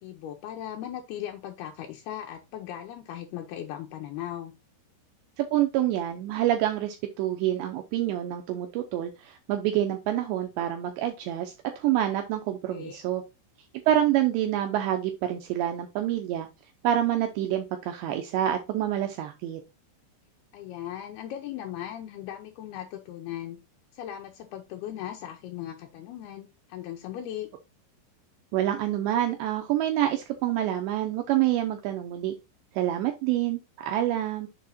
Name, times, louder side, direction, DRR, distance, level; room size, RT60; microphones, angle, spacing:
voice 1, 0.0-4.5 12.7-13.0 20.5-23.6 23.9-27.5, left 11 dB, 85° left, 3 dB, 2.3 m, -38 dB
voice 2, 5.4-13.2 13.9-16.5 16.8-19.6 28.5-32.4 32.8-34.5, right 12 dB, 80° right, 5 dB, 2.7 m, -27 dB
7.1 x 4.8 x 4.2 m, 0.25 s
omnidirectional pair, 5.6 m